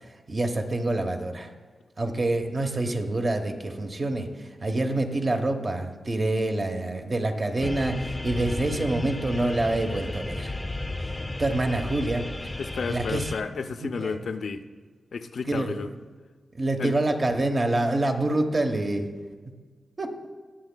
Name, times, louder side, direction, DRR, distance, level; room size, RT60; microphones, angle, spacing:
voice 1, 0.3-1.5 2.0-10.5 11.4-12.5 12.9-13.2 13.8-14.2 15.5-15.8 16.5-19.1 20.0-20.3, right 2 dB, 40° right, 4 dB, 1.0 m, -26 dB
sound 1, 7.6-13.4, left 2 dB, 20° left, 0.7 m, -33 dB
voice 2, 12.6-14.6 15.1-15.9 16.8-17.0, left 5 dB, 70° left, 9 dB, 0.5 m, -32 dB
20.0 x 6.9 x 2.2 m, 1.5 s
cardioid pair, 70°, 0 cm